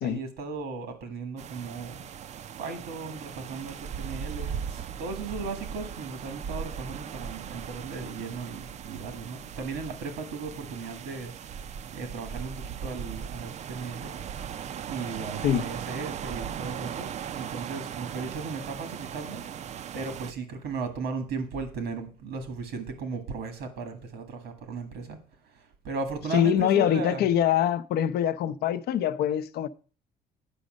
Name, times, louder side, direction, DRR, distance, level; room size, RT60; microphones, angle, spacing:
voice 1, 0.0-2.0 2.6-11.3 11.9-14.1 14.8-19.4 19.9-25.2 25.5-27.2, right 4 dB, 85° right, 1.8 m, -36 dB
sound 1, 1.4-20.3, right 8 dB, 45° right, 0.4 m, -38 dB
voice 2, 26.3-29.7, left 10 dB, 70° left, 0.6 m, -24 dB
9.9 x 5.2 x 6.3 m
cardioid pair, 110°, 17 cm